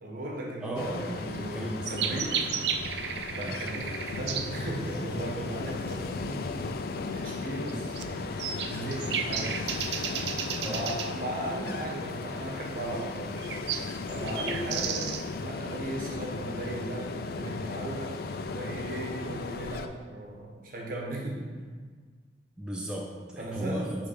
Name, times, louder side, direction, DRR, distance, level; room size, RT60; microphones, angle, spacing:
voice 1, 0.0-2.4 3.4-6.5 7.0-8.3 8.6-9.5 10.5-13.6 14.1-15.1 15.4-18.1 18.5-21.4 23.4-23.9, right 1 dB, 50° right, -2 dB, 1.2 m, -36 dB
voice 2, 0.6-2.2 3.4-3.6 10.6-10.9 14.7-14.9 22.6-24.1, right 1 dB, 5° right, -3 dB, 0.5 m, -36 dB
Ocean, 0.8-19.9, left 4 dB, 55° left, 0.4 m, -36 dB
sound 1, 1.3-15.4, right 7 dB, 70° right, 0.4 m, -35 dB
6.6 x 3.5 x 5.7 m, 1.5 s
head